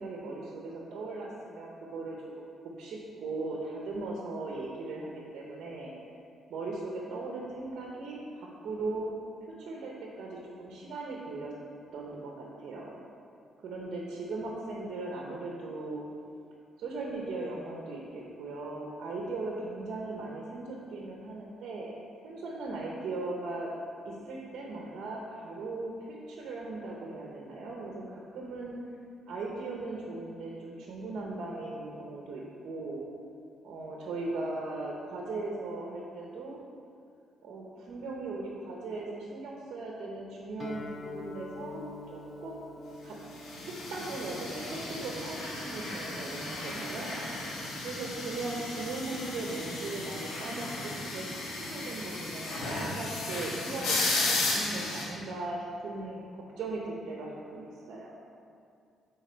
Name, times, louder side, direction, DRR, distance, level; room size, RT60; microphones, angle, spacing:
voice 1, 0.0-2.5 2.8-5.9 6.5-9.1 9.6-11.5 11.9-12.9 13.6-16.0 16.8-21.9 22.2-23.7 24.0-28.7 29.3-33.1 33.6-36.6 37.4-41.8 42.1-43.2 43.6-47.1 47.8-58.1, right 2 dB, 70° right, -2 dB, 0.9 m, -38 dB
Guitar, 40.6-48.3, left 2 dB, 35° left, 0.9 m, -47 dB
sound 1, 43.4-55.0, left 2 dB, 90° left, 1.6 m, -34 dB
8.1 x 4.2 x 4.5 m, 2.4 s
cardioid pair, 90°, 0 cm